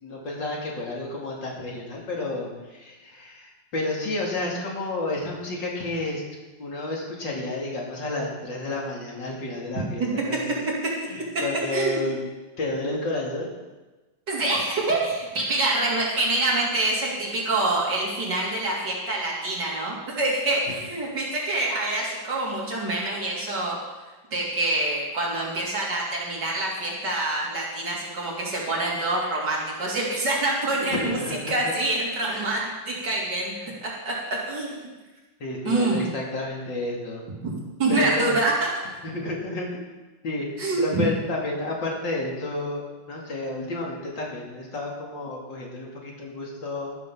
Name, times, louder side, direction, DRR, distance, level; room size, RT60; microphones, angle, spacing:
voice 1, 0.0-6.2 6.6-10.5 11.0-12.2 12.6-13.5 15.5-15.7 20.7-20.8 30.9-31.7 32.2-32.5 33.6-33.7 35.4-37.2 37.9-38.4 39.0-39.9 40.2-40.5 40.8-47.0, left 2 dB, 75° left, -2 dB, 3.3 m, -31 dB
voice 2, 10.0-10.4 11.7-12.2 14.3-23.8 24.3-31.2 31.5-32.6 32.9-33.5 33.8-34.9 35.7-36.1 37.4-38.5 40.6-41.0, right 2 dB, 65° right, -4 dB, 3.5 m, -26 dB
13.5 x 13.0 x 3.9 m, 1.2 s
omnidirectional pair, 2.0 m